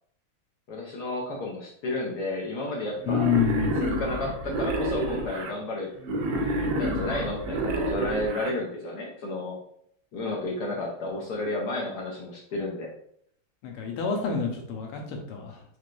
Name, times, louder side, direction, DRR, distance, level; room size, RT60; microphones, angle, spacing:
voice 1, 0.7-3.3 3.8-5.9 6.4-9.6 10.1-12.9, left 2 dB, 65° left, -2 dB, 1.0 m, -32 dB
Wild animals, 3.0-5.5 6.0-8.5, right 1 dB, 75° right, 1.2 m, -29 dB
voice 2, 3.1-3.8 13.6-15.6, left 7 dB, 90° left, 1 dB, 1.7 m, -28 dB
4.2 x 3.2 x 2.5 m, 0.67 s
omnidirectional pair, 2.4 m